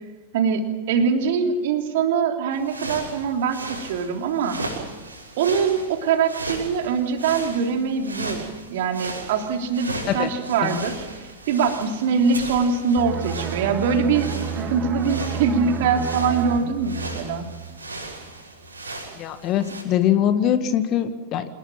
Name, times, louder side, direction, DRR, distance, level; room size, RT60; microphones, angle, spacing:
voice 1, 0.3-4.6 5.4-8.4 8.7-11.0 11.5-17.4, right 5 dB, 55° right, 4 dB, 3.3 m, -23 dB
sound 1, 2.5-19.8, right 2 dB, 75° right, 6.0 m, -36 dB
sound 2, 13.0-18.4 18.7-18.9, right 8 dB, 35° right, 2.1 m, -31 dB
voice 2, 19.2-21.5, left 10 dB, 35° left, 10 dB, 1.8 m, -22 dB
27.0 x 19.5 x 7.7 m, 1.2 s
figure-of-eight pair, 90°, 0 cm